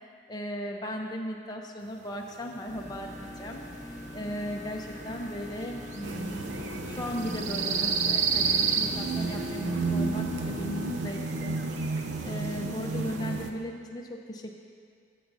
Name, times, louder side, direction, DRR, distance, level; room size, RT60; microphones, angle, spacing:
voice 1, 0.3-3.6 3.9-11.6 12.2-14.5, equal, 20° left, 0 dB, 0.7 m, -37 dB
sound 1, 2.3-13.2, right 6 dB, 40° right, 0.4 m, -34 dB
sound 2, 2.7-10.9, left 1 dB, 35° left, 1.8 m, -43 dB
sound 3, 6.0-13.5, right 3 dB, 80° right, 0.6 m, -33 dB
14.0 x 7.8 x 2.7 m, 2.1 s
head